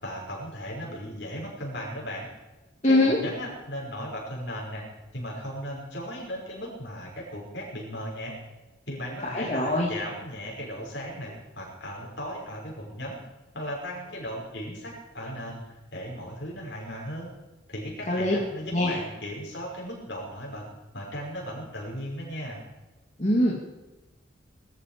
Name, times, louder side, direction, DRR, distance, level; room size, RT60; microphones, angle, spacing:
voice 1, 0.0-2.3 2.8-4.9 5.1-8.4 8.9-13.2 13.5-17.3 17.7-20.7 20.9-22.6, equal, 65° left, -2 dB, 6.0 m, -36 dB
voice 2, 2.8-3.2 9.3-9.9 18.1-18.4 18.7-19.0 23.2-23.7, left 1 dB, 35° left, -4 dB, 2.1 m, -23 dB
20.0 x 13.5 x 5.1 m, 1.1 s
head